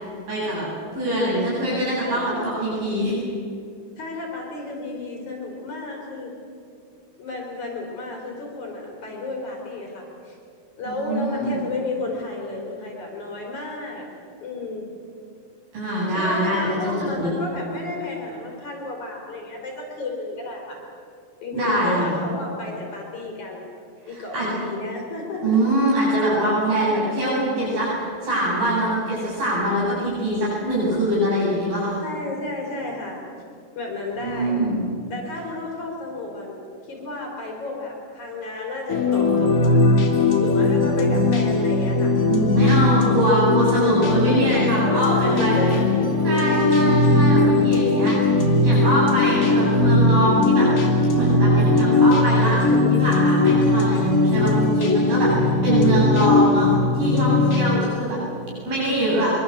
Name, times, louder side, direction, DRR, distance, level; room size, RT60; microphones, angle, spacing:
voice 1, 0.3-0.7 0.9-3.2 10.9-11.6 15.7-17.3 21.5-22.2 24.1-24.5 25.4-32.0 34.2-34.8 42.3-45.6 46.2-48.3 48.6-50.7 51.1-56.7 56.9-58.2 58.7-59.3, right 1 dB, 65° right, -7 dB, 10.0 m, -23 dB
voice 2, 2.0-2.5 4.0-6.3 7.2-10.4 10.8-14.1 14.4-14.8 16.1-20.8 21.4-23.7 24.1-25.6 26.8-27.0 32.0-33.2 33.8-34.7 35.1-39.8 40.4-42.2 43.8-43.9 44.8-46.2 55.7-55.8 57.1-58.0, left 2 dB, 50° left, 0 dB, 5.3 m, -32 dB
sound 1, 38.9-57.8, left 2 dB, 25° left, 2.5 m, -19 dB
24.5 x 24.0 x 8.1 m, 2.5 s
omnidirectional pair, 4.5 m